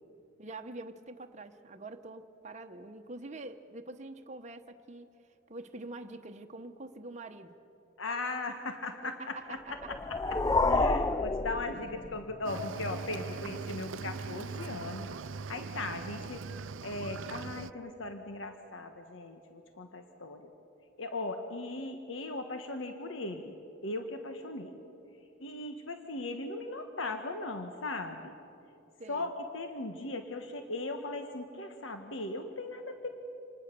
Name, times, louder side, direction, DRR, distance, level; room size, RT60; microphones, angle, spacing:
voice 1, 0.4-5.1 5.5-7.6 9.0-9.9 29.0-29.3, right 2 dB, 40° right, 6 dB, 1.0 m, -45 dB
voice 2, 8.0-9.6 9.9-10.4 10.7-15.1 15.5-16.5 16.8-20.5 21.0-23.6 23.8-24.7 25.4-28.3 29.1-33.1, left 2 dB, 85° left, 6 dB, 1.4 m, -38 dB
sound 1, 9.7-12.3, left 3 dB, 20° left, 0.5 m, -29 dB
Cricket / Waves surf, 12.4-17.7, right 4 dB, 80° right, 0.6 m, -40 dB
26.5 x 20.0 x 6.8 m, 2.7 s
head